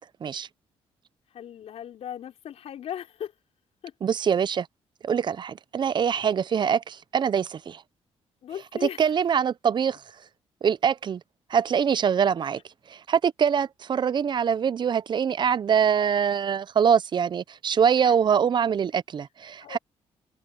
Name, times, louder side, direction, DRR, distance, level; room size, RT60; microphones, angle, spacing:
voice 1, 1.3-3.3 3.8-3.9 8.4-9.2 18.0-18.2 19.6-19.8, left 10 dB, 70° left, 5.3 m, -37 dB
voice 2, 4.0-4.7 5.0-7.8 9.0-10.0 10.6-11.2 11.5-12.6 12.9-19.8, right 7 dB, 45° right, 0.6 m, -24 dB
cardioid pair, 100°, 11 cm